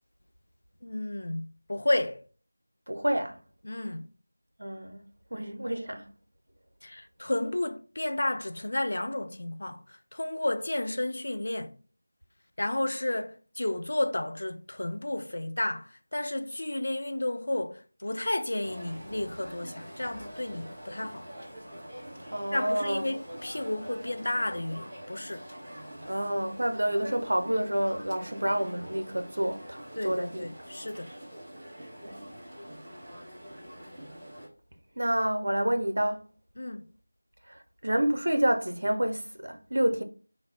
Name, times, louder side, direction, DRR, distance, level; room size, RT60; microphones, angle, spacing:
voice 1, 0.8-2.2 3.6-4.1 6.8-11.8 12.6-21.3 22.5-25.5 30.0-31.1 36.6-36.8, left 1 dB, 60° left, 0.4 m, -32 dB
voice 2, 2.9-3.4 4.6-5.0 5.3-6.1 22.0-23.1 26.1-30.5 32.0-32.2 35.0-36.2 37.5-40.0, right 1 dB, 70° right, 0.6 m, -29 dB
sound 1, 18.6-34.5, equal, 10° right, 1.1 m, -45 dB
3.8 x 2.1 x 4.1 m
figure-of-eight pair, 170°, 0 cm